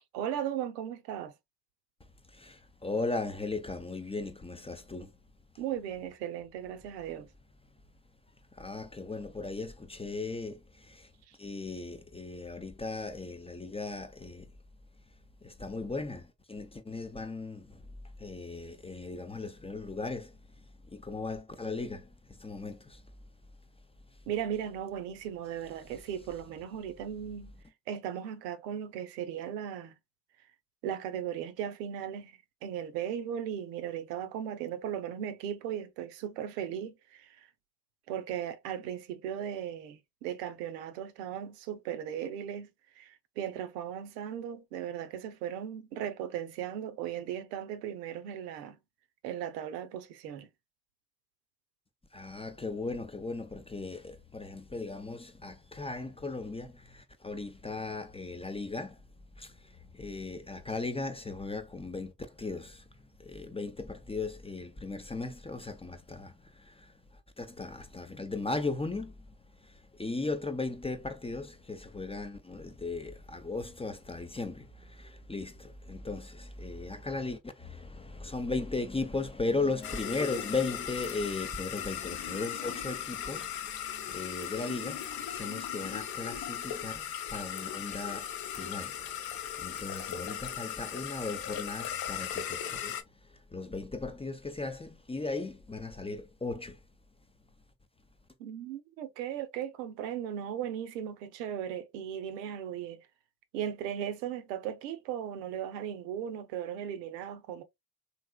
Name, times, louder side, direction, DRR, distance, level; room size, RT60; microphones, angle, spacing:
voice 1, 0.1-1.3 5.6-7.3 11.3-11.4 24.3-27.5 27.9-29.9 30.8-37.5 38.1-42.7 43.0-48.8 49.2-50.5 98.4-103.1 103.5-107.6, right 9 dB, 80° right, 0.7 m, -37 dB
voice 2, 2.3-5.1 8.5-11.1 11.4-14.5 15.4-17.8 18.2-20.4 20.9-23.0 52.1-59.0 59.4-62.9 63.2-96.8, left 3 dB, 10° left, 0.5 m, -37 dB
sound 1, 79.8-93.0, left 9 dB, 50° left, 0.8 m, -38 dB
3.3 x 2.8 x 2.2 m
hypercardioid pair, 50°, 48 cm